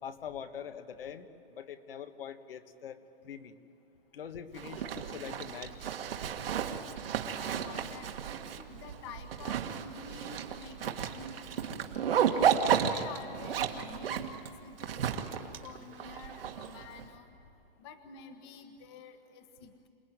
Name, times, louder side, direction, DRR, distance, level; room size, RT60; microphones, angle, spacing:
voice 1, 0.0-3.0 3.2-3.5 4.1-5.8, left 8 dB, 70° left, 8 dB, 1.6 m, -43 dB
Zipper (clothing), 4.5-17.0, right 8 dB, 70° right, 2.0 m, -33 dB
voice 2, 7.4-12.5 12.9-17.4 17.8-19.9, left 4 dB, 25° left, 8 dB, 1.3 m, -49 dB
28.0 x 19.0 x 9.4 m, 2.9 s
hypercardioid pair, 175°, 30 cm